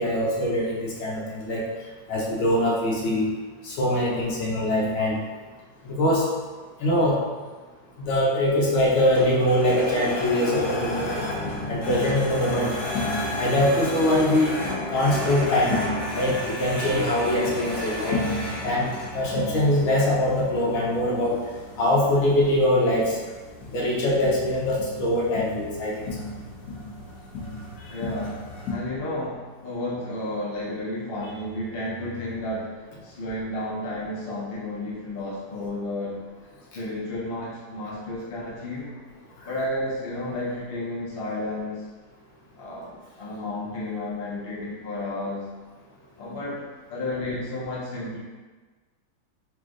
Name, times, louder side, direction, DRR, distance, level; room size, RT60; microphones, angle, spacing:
voice 1, 0.0-1.6 2.1-3.3 3.6-5.2 5.8-6.3 6.8-7.2 8.1-11.3 11.7-12.8 13.4-14.6 14.9-15.8 16.1-18.2 18.6-18.9 19.1-21.4 21.8-23.2 23.7-26.1 27.8-27.9, left 1 dB, 80° left, -3 dB, 1.7 m, -23 dB
sound 1, 8.9-28.7, left 1 dB, 55° left, 1.4 m, -32 dB
voice 2, 27.9-28.4 28.7-36.2 36.7-38.9 39.4-41.8 42.6-45.5 46.2-46.6 46.9-48.2, left 1 dB, 40° left, -6 dB, 0.9 m, -32 dB
3.8 x 3.3 x 3.7 m, 1.3 s
omnidirectional pair, 2.2 m